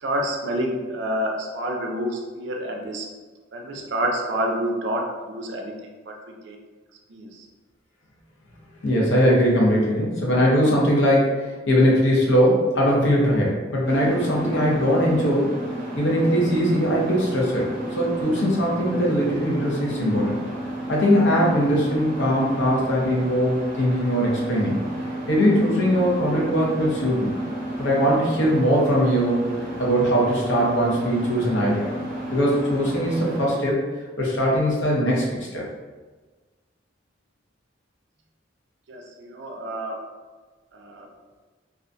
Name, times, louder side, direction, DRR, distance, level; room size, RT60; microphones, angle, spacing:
voice 1, 0.0-3.1 3.5-6.1 6.4-6.6 7.1-7.5 38.9-40.0 40.7-41.1, right 1 dB, 65° right, 1 dB, 0.4 m, -28 dB
voice 2, 8.8-11.3 11.7-15.5 16.0-17.7 18.0-20.4 20.9-24.8 25.3-27.3 27.8-29.4 29.8-31.9 32.3-33.8 34.2-35.3 35.5-35.6, equal, 75° left, -3 dB, 0.7 m, -20 dB
sound 1, 13.8-33.5, right 1 dB, 10° right, 0.8 m, -32 dB
2.4 x 2.2 x 2.5 m, 1.3 s
head